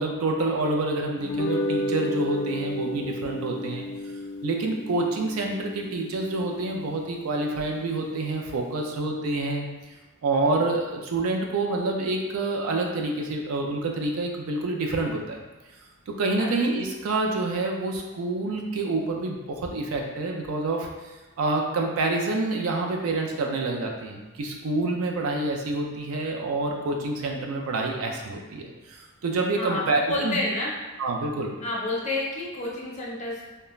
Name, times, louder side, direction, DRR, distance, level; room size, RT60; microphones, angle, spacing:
voice 1, 0.0-3.9 4.4-9.7 10.2-15.4 16.1-21.1 21.4-30.4 31.0-31.5, right 2 dB, 70° right, 1 dB, 0.4 m, -27 dB
sound 1, 1.2-7.7, left 1 dB, 90° left, 0.4 m, -32 dB
voice 2, 30.1-30.7 31.6-33.4, left 2 dB, 35° left, -5 dB, 0.5 m, -29 dB
2.3 x 2.1 x 3.0 m, 1.2 s
head